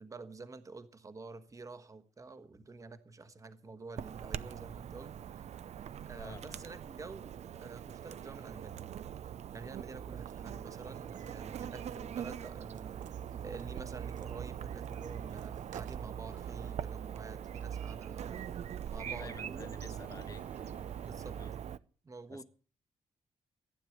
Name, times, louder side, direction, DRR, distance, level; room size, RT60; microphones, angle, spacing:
voice 1, 0.0-5.4 6.0-9.0 9.5-13.0 13.4-18.5 18.9-19.7 21.1-21.4 22.0-22.4, right 3 dB, 25° right, 1.3 m, -49 dB
Chirp tweet / Buzz, 4.0-21.8, right 9 dB, 65° right, 0.6 m, -42 dB
voice 2, 6.1-6.7 19.0-20.9 21.4-21.5 22.3-22.4, left 4 dB, 30° left, 0.9 m, -51 dB
sound 1, 10.2-16.1, right 9 dB, 85° right, 0.9 m, -55 dB
sound 2, 16.3-21.5, right 1 dB, 10° right, 1.6 m, -61 dB
15.5 x 9.4 x 7.9 m
wide cardioid pair, 135°, 12 cm